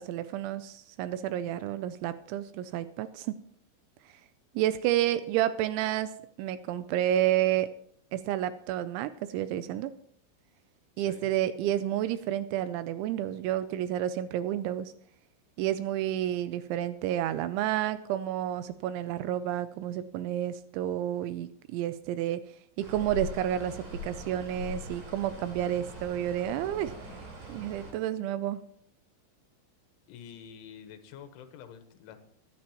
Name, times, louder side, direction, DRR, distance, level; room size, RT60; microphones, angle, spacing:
voice 1, 0.0-3.3 4.6-6.1 6.4-7.7 8.1-9.9 11.0-14.9 15.6-22.4 22.8-26.9 27.5-28.6, right 12 dB, 85° right, 12 dB, 2.8 m, -30 dB
voice 2, 11.0-11.3 30.1-32.2, left 8 dB, 80° left, 8 dB, 3.5 m, -48 dB
sound 1, 22.8-27.9, left 1 dB, 55° right, 5.8 m, -42 dB
22.5 x 9.5 x 3.0 m, 0.63 s
omnidirectional pair, 5.6 m